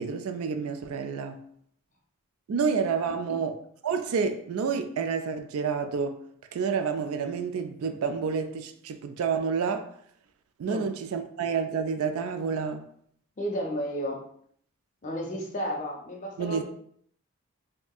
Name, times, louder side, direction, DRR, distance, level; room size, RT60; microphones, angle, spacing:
voice 1, 0.0-1.4 2.5-3.6 3.8-6.2 6.5-9.9 10.6-12.9 16.4-16.6, right 5 dB, 75° right, 0.3 m, -29 dB
voice 2, 3.0-3.4 10.7-10.9 13.4-14.2 15.0-16.6, equal, 35° left, 0.5 m, -33 dB
3.4 x 2.6 x 2.3 m
head